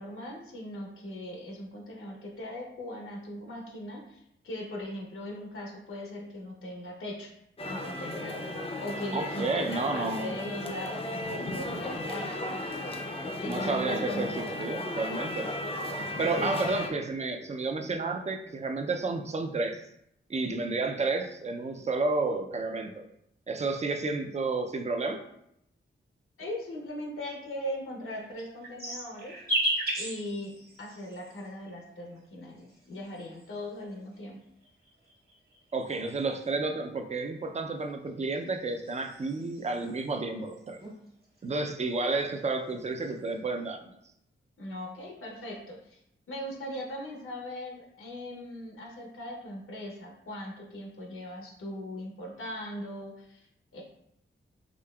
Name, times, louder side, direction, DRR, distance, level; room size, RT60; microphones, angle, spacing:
voice 1, 0.0-7.3 7.7-8.4 8.8-12.5 13.4-14.4 15.9-16.7 26.4-29.4 30.0-34.4 44.6-46.0 46.3-53.5 53.7-53.8, left 1 dB, 85° left, 0 dB, 0.8 m, -39 dB
sound 1, 7.6-16.9, left 1 dB, 25° left, 0.5 m, -35 dB
voice 2, 9.1-10.4 13.4-15.5 16.2-19.8 20.3-22.9 23.5-25.2 35.7-40.8 41.4-43.9, right 3 dB, 35° right, 5 dB, 0.4 m, -31 dB
sound 2, 28.0-31.5 32.4-33.8 34.6-36.5 37.9-40.1 40.4-41.0 41.2-42.3 42.7-43.3, right 1 dB, 50° right, 1.4 m, -36 dB
5.1 x 2.7 x 2.3 m, 0.76 s
wide cardioid pair, 110°, 21 cm